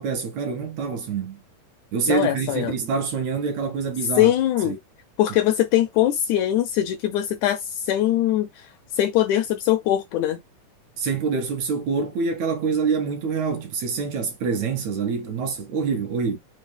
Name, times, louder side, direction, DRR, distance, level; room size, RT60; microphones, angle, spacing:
voice 1, 0.0-1.4 1.9-4.3 4.7-4.8 11.0-16.4, right 5 dB, 70° right, 1.9 m, -26 dB
voice 2, 2.1-2.7 4.2-4.8 5.2-8.5 9.0-10.4, left 12 dB, 80° left, 1.7 m, -21 dB
5.3 x 2.4 x 3.3 m
omnidirectional pair, 3.8 m